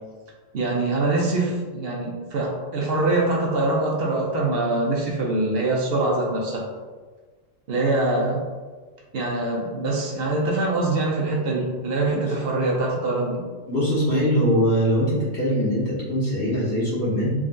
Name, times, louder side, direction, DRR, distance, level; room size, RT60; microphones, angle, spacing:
voice 1, 0.5-6.6 7.7-8.4 9.1-13.4, right 2 dB, 55° right, -2 dB, 0.8 m, -24 dB
voice 2, 13.7-17.3, equal, 60° left, -9 dB, 1.9 m, -22 dB
3.8 x 3.1 x 2.5 m, 1.4 s
omnidirectional pair, 1.3 m